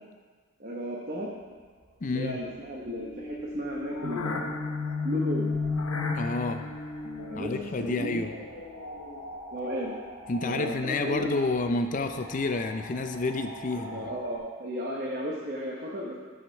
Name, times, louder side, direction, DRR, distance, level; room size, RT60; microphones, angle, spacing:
voice 1, 0.6-1.3 2.1-4.5 5.0-5.5 7.3-7.5 7.8-8.3 9.5-9.9 10.4-11.4 13.7-16.2, equal, 40° right, -3 dB, 0.9 m, -34 dB
sound 1, 1.3-14.4, equal, 75° right, 2.8 m, -47 dB
voice 2, 2.0-2.4 6.1-6.7 7.3-8.3 10.3-14.1, left 3 dB, 35° left, 7 dB, 0.4 m, -29 dB
sound 2, 3.0-9.4, left 3 dB, 85° left, 0.9 m, -33 dB
14.5 x 4.9 x 4.5 m, 1.5 s
head